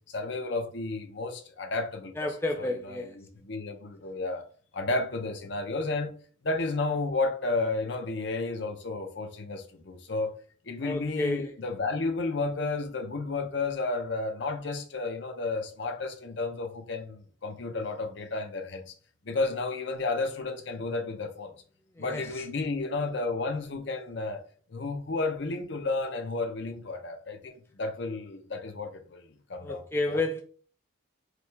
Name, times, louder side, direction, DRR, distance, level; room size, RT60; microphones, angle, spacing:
voice 1, 0.1-2.2 2.6-4.4 4.7-6.1 6.4-10.4 10.7-18.9 19.2-21.5 22.0-24.4 24.7-30.2, left 3 dB, 60° left, 0.7 m, -32 dB
voice 2, 2.2-3.2 10.8-11.5 21.9-22.4 29.6-30.4, left 2 dB, 10° left, 0.4 m, -31 dB
4.9 x 2.4 x 3.3 m
head